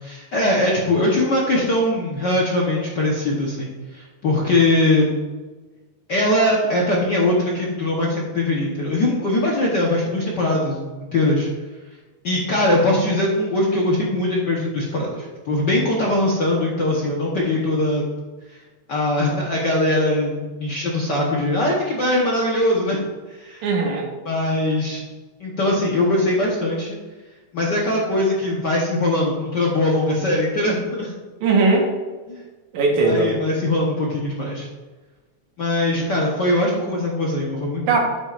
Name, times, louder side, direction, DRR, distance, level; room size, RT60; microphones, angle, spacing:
voice 1, 0.0-5.1 6.1-11.5 12.2-18.0 18.5-18.6 18.9-23.0 23.3-23.7 24.2-25.0 25.4-27.0 27.5-31.1 32.3-32.4 33.0-34.7 35.6-38.0, left 1 dB, 60° left, -3 dB, 1.1 m, -21 dB
voice 2, 23.6-24.1 31.4-31.9 32.7-33.3 37.9-38.0, right 3 dB, 80° right, 1 dB, 2.6 m, -18 dB
9.2 x 9.0 x 2.5 m, 1.3 s
omnidirectional pair, 3.3 m